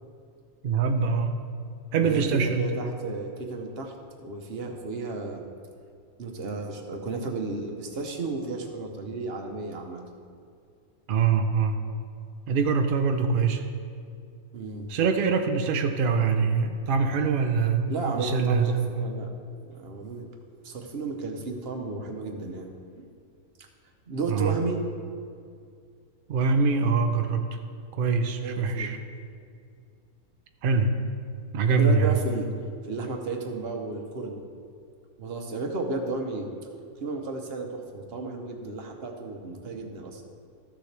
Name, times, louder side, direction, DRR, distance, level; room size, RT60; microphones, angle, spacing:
voice 1, 0.6-1.3 1.9-2.6 11.1-11.8 12.5-13.6 14.9-19.0 24.3-24.6 26.3-27.6 27.9-29.0 30.6-30.9 31.5-32.1, right 5 dB, 75° right, 6 dB, 0.5 m, -24 dB
voice 2, 2.0-5.4 6.2-10.0 14.5-14.9 17.9-19.3 19.6-20.3 20.6-23.1 24.1-24.8 28.4-28.9 31.8-32.5 32.9-34.4 35.2-36.5 37.0-40.2, right 3 dB, 45° right, 3 dB, 1.0 m, -33 dB
13.5 x 6.9 x 3.3 m, 2.3 s
omnidirectional pair, 1.6 m